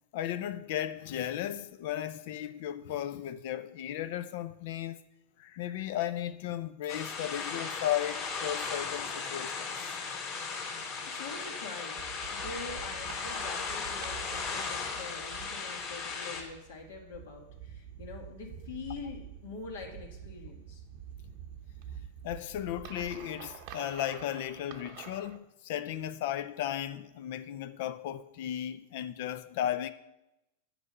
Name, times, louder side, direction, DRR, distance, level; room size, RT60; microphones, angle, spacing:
voice 1, 0.1-5.0 5.4-9.9 22.2-29.9, left 11 dB, 60° left, 0.5 m, -35 dB
sound 1, 6.9-16.4, left 5 dB, 40° left, 2.2 m, -37 dB
voice 2, 11.1-12.0 12.3-20.8, left 4 dB, 75° left, 2.1 m, -44 dB
sound 2, 12.0-25.4, right 9 dB, 50° right, 0.8 m, -47 dB
8.2 x 6.1 x 5.5 m
supercardioid pair, 135°, 0 cm